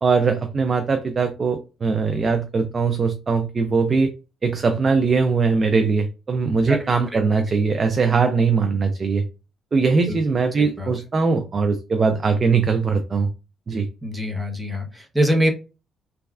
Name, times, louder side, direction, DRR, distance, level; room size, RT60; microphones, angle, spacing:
voice 1, 0.0-4.1 4.4-9.2 9.7-13.3 13.7-13.9, right 4 dB, 40° right, 7 dB, 0.4 m, -21 dB
voice 2, 14.0-15.5, equal, 5° right, 0 dB, 0.8 m, -23 dB
3.1 x 2.2 x 2.3 m, 0.31 s
cardioid pair, 90°, 0 cm